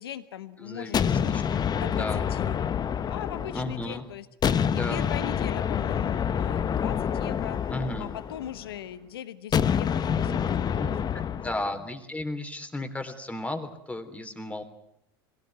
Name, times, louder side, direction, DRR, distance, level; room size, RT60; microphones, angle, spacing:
voice 1, 0.0-1.4 1.7-2.0 2.3-2.6 3.1-4.3 4.7-7.6 8.0-10.5 10.7-11.2, left 11 dB, 85° left, 13 dB, 1.0 m, -39 dB
voice 2, 0.6-2.3 3.5-4.0 4.7-5.1 7.7-8.1 10.0-10.4 10.8-14.6, left 2 dB, 10° left, 7 dB, 3.5 m, -35 dB
sound 1, 0.9-4.0 4.4-8.7 9.5-11.6, left 8 dB, 35° left, 1.1 m, -27 dB
22.5 x 17.5 x 9.5 m, 0.81 s
hypercardioid pair, 80°, 12 cm